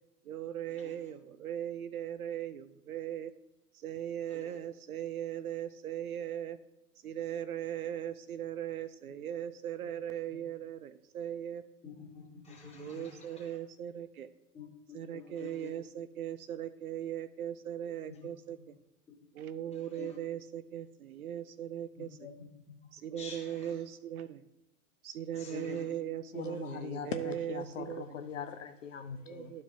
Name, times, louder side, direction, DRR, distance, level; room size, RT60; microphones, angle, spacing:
voice 1, 0.3-3.3 3.8-6.6 7.0-11.6 12.7-14.3 14.9-18.7 19.3-22.1 22.9-24.4 25.0-28.2 29.2-29.6, right 10 dB, 65° right, 13 dB, 0.6 m, -39 dB
voice 2, 11.8-13.6 14.5-15.7 18.1-18.2 19.7-20.2 22.0-22.8 23.1-23.8 25.3-25.8, left 6 dB, 15° left, -3 dB, 2.0 m, -48 dB
voice 3, 26.3-29.5, left 7 dB, 55° left, 8 dB, 0.6 m, -40 dB
12.0 x 4.7 x 2.8 m, 0.95 s
figure-of-eight pair, 100°, 46 cm